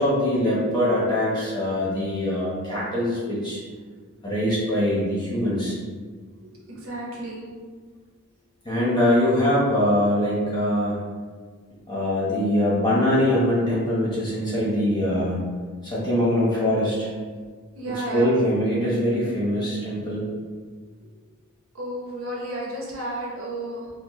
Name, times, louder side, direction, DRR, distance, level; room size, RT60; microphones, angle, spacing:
voice 1, 0.0-3.6 4.2-5.8 8.6-11.0 11.9-15.4 15.8-17.1 18.1-20.3, left 1 dB, 20° left, -7 dB, 1.0 m, -23 dB
voice 2, 6.4-7.5 17.7-18.3 21.7-23.9, right 1 dB, 65° right, -4 dB, 0.8 m, -32 dB
4.4 x 2.0 x 3.1 m, 1.5 s
head